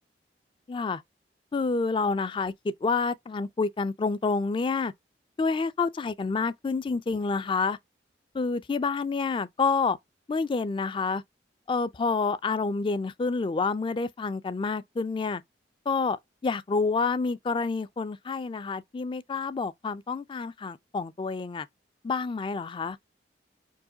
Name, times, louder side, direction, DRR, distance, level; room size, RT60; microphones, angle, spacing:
voice 1, 0.7-1.0 1.5-4.9 5.4-7.8 8.3-10.0 10.3-11.2 11.7-15.4 15.9-21.7 22.0-23.0, left 4 dB, 30° left, 0.3 m, -28 dB
4.6 x 2.1 x 2.7 m
head